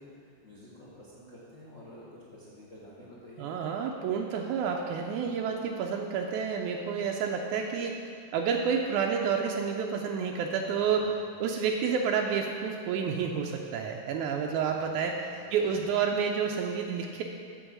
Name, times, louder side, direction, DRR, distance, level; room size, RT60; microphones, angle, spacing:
voice 1, 0.0-3.7 10.7-11.1 14.3-15.8, left 1 dB, 80° left, -7 dB, 0.7 m, -50 dB
voice 2, 3.4-11.1 11.4-15.2 15.5-17.2, right 6 dB, 90° right, 1 dB, 1.7 m, -29 dB
8.8 x 4.6 x 7.2 m, 2.3 s
omnidirectional pair, 4.1 m